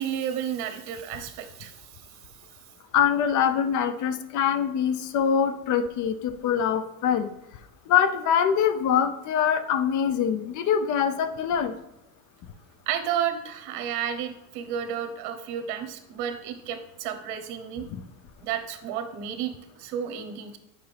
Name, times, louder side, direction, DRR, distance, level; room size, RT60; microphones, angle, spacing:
voice 1, 0.0-1.7 12.9-17.8 18.4-20.6, right 9 dB, 65° right, 8 dB, 1.1 m, -32 dB
voice 2, 2.9-7.3 7.9-11.7 17.9-18.0, left 8 dB, 45° left, 10 dB, 0.7 m, -24 dB
8.0 x 5.4 x 3.4 m, 0.89 s
supercardioid pair, 120°, 42 cm